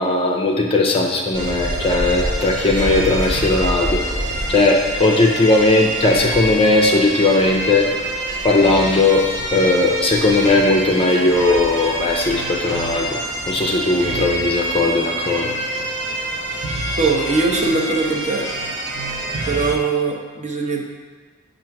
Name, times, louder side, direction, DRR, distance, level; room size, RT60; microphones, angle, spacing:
voice 1, 0.0-4.0 4.5-7.9 8.4-9.2 9.5-13.1 13.5-15.5, left 2 dB, 25° left, 1 dB, 0.5 m, -17 dB
sound 1, 1.3-19.7, right 1 dB, 50° right, 1.0 m, -26 dB
voice 2, 17.0-18.5 19.5-20.8, right 3 dB, 30° right, 0 dB, 0.7 m, -21 dB
7.4 x 2.6 x 5.8 m, 1.4 s
head